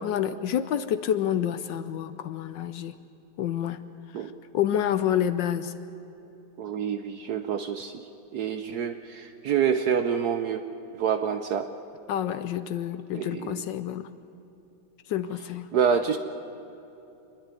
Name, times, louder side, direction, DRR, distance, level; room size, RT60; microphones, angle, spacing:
voice 1, 0.0-2.9 3.4-3.8 4.1-5.7 12.1-14.1 15.1-15.7, left 10 dB, 70° left, 12 dB, 1.2 m, -28 dB
voice 2, 6.6-8.1 8.3-10.6 10.9-11.7 13.1-13.6 15.7-16.2, right 7 dB, 65° right, 8 dB, 1.0 m, -27 dB
26.5 x 11.0 x 9.5 m, 2.9 s
omnidirectional pair, 2.3 m